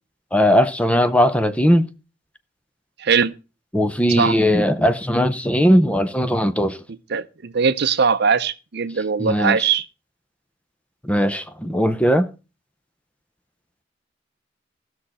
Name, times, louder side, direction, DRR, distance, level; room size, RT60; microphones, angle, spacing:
voice 1, 0.3-1.9 3.7-6.8 9.2-9.7 11.0-12.3, equal, 5° left, 0.6 m, -18 dB
voice 2, 3.0-3.3 4.1-4.4 6.9-9.9, right 6 dB, 60° right, 0.6 m, -20 dB
16.5 x 6.4 x 4.2 m
head